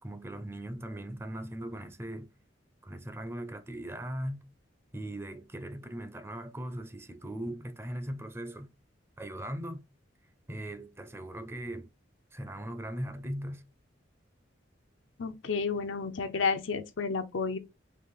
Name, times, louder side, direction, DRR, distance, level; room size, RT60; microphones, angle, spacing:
voice 1, 0.0-2.3 2.8-4.4 4.9-8.7 9.2-9.8 10.5-11.9 12.3-13.6, right 1 dB, 10° right, 0.5 m, -39 dB
voice 2, 15.2-17.6, left 5 dB, 75° left, 0.5 m, -31 dB
4.9 x 2.4 x 3.5 m
head